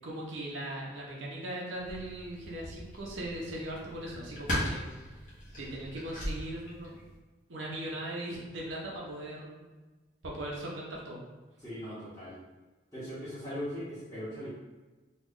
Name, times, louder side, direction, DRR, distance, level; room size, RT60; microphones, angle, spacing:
voice 1, 0.0-5.1 5.5-7.0 7.5-9.7 10.2-11.2, right 1 dB, 90° right, -4 dB, 0.7 m, -39 dB
sound 1, 1.8-7.2, equal, 45° left, 1.1 m, -39 dB
voice 2, 11.6-12.3 12.9-14.5, equal, 15° left, -13 dB, 1.2 m, -39 dB
3.1 x 2.3 x 3.6 m, 1.2 s
head